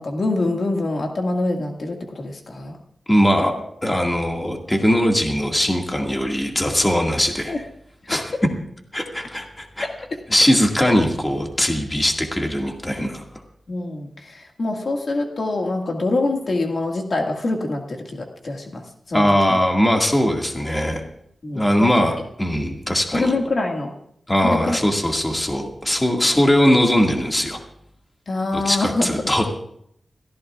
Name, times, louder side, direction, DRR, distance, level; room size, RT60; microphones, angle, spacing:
voice 1, 0.0-2.8 7.5-7.6 9.8-9.9 10.8-10.9 13.7-19.6 21.4-22.0 23.1-23.9 24.4-24.8 28.3-29.1, left 2 dB, 55° left, 1 dB, 1.9 m, -25 dB
voice 2, 3.1-3.5 3.8-7.6 8.1-8.2 8.9-9.9 10.3-13.2 19.1-21.0 21.5-23.3 24.3-27.6 28.5-29.5, equal, 15° left, 1 dB, 2.0 m, -20 dB
30.0 x 14.5 x 2.4 m, 0.71 s
wide cardioid pair, 155°, 0 cm